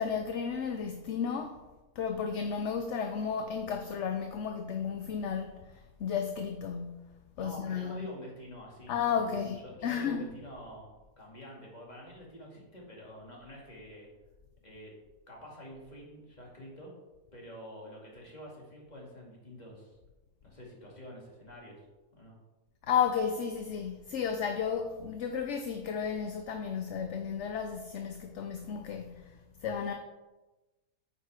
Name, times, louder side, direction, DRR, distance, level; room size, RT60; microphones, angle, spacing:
voice 1, 0.0-1.6 2.0-7.1 7.4-8.1 8.9-10.3 22.8-29.9, left 7 dB, 60° left, 0.9 m, -33 dB
voice 2, 7.4-10.9 11.2-14.1 14.6-14.9 15.3-16.9 17.3-20.0 20.4-21.8 22.1-22.3, equal, 30° left, 2.5 m, -47 dB
9.1 x 6.6 x 4.9 m
omnidirectional pair, 1.6 m